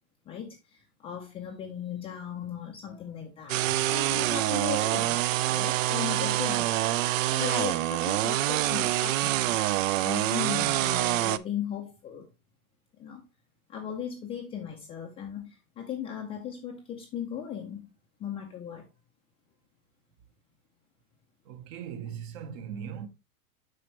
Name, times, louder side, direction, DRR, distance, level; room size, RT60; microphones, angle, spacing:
voice 1, 0.3-9.4 10.0-12.2 13.0-13.2 13.7-17.9 18.2-18.9, left 8 dB, 15° left, 0.4 m, -37 dB
sound 1, 3.5-11.4, right 15 dB, 60° right, 0.5 m, -26 dB
voice 2, 21.4-23.1, right 8 dB, 40° right, 0.9 m, -39 dB
7.7 x 5.1 x 3.1 m
hypercardioid pair, 140°, 45 cm